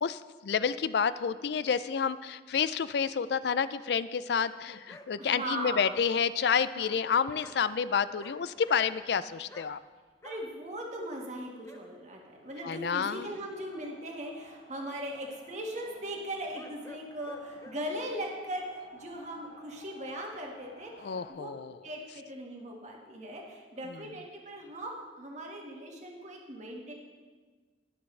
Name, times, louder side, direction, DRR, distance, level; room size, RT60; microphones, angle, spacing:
voice 1, 0.0-9.8 12.6-13.3 21.0-21.7, left 6 dB, 65° left, 15 dB, 0.4 m, -29 dB
sound 1, 4.9-5.1 7.4-7.6 8.0-8.4 8.6-9.1 9.5-9.7 10.2-10.4 11.6-11.8 12.7-12.8 16.5-17.8, left 1 dB, 15° left, 0.6 m, -50 dB
voice 2, 5.2-6.0 6.7-6.9 10.2-21.5 21.8-26.9, right 1 dB, 40° right, 0 dB, 1.6 m, -39 dB
sound 2, 12.2-21.3, left 2 dB, 45° left, 1.6 m, -56 dB
20.5 x 6.9 x 3.3 m, 1.4 s
head